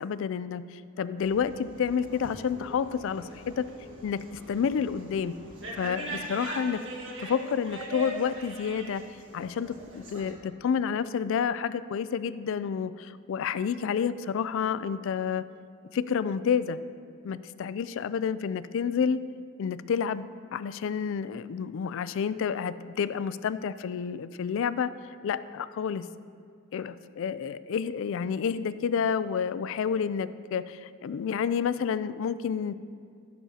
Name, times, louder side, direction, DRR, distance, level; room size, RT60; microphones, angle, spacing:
voice 1, 0.0-3.3 3.6-3.7 4.0-5.3 5.7-6.9 7.2-9.0 9.3-15.4 15.9-16.8 17.2-19.2 19.6-20.3 20.5-24.9 25.2-26.0 26.7-32.7, left 7 dB, 60° left, 15 dB, 0.3 m, -29 dB
sound 1, 1.2-10.3, right 1 dB, 60° right, 1.5 m, -41 dB
15.5 x 7.0 x 2.8 m, 2.3 s
head